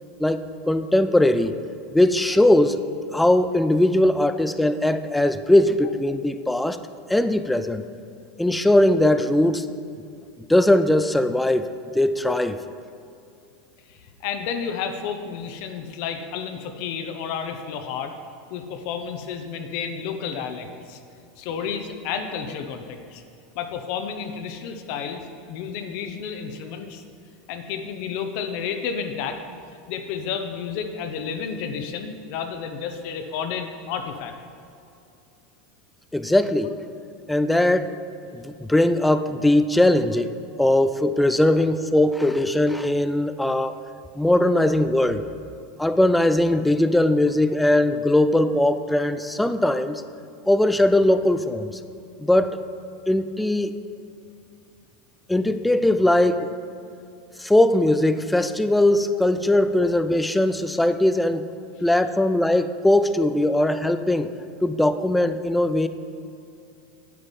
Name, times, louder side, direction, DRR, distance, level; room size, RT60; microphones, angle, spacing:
voice 1, 0.2-1.5 1.9-2.8 3.1-6.8 7.1-7.9 8.4-9.7 10.5-12.6 36.1-36.8 37.3-37.9 38.3-40.3 40.6-43.7 44.2-45.2 45.8-50.0 50.5-51.7 52.2-52.6 53.1-53.7 55.3-56.6 57.4-61.5 61.8-64.3 64.6-65.9, left 1 dB, 5° left, 11 dB, 0.4 m, -20 dB
voice 2, 13.9-18.1 18.5-21.0 21.4-23.2 23.5-27.0 27.5-29.4 29.9-34.3, left 7 dB, 60° left, 6 dB, 1.0 m, -31 dB
9.4 x 8.0 x 5.4 m, 2.6 s
supercardioid pair, 135°, 0 cm